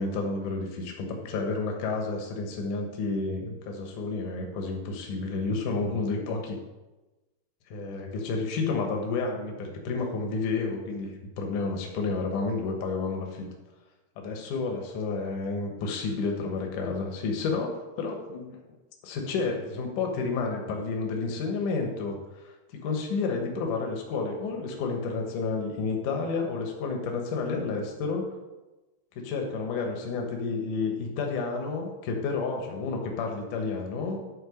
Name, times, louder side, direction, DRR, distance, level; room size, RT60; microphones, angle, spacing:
voice 1, 0.0-6.6 7.7-11.1 11.4-13.5 14.2-18.6 19.0-22.5 22.8-28.3 29.2-34.2, left 4 dB, 75° left, 2 dB, 2.6 m, -30 dB
11.5 x 4.3 x 6.3 m, 1.1 s
omnidirectional pair, 3.6 m